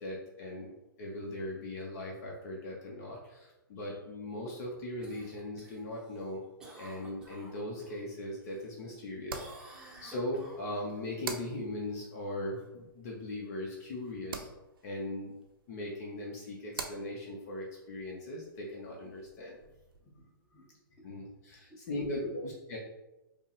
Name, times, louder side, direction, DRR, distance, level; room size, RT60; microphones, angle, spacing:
voice 1, 0.0-6.4 6.8-14.5 14.8-15.4 15.7-19.6 21.0-22.8, left 1 dB, 45° left, -2 dB, 0.8 m, -39 dB
Cough, 5.0-8.0 8.4-9.0 9.3-11.0 15.4-15.5, right 2 dB, 5° right, 0.7 m, -52 dB
sound 1, 7.2-20.0, right 4 dB, 75° right, 0.6 m, -49 dB
voice 2, 20.0-21.1 21.7-22.3, equal, 20° left, -3 dB, 1.0 m, -50 dB
5.1 x 2.0 x 3.1 m, 1.0 s
figure-of-eight pair, 120°, 12 cm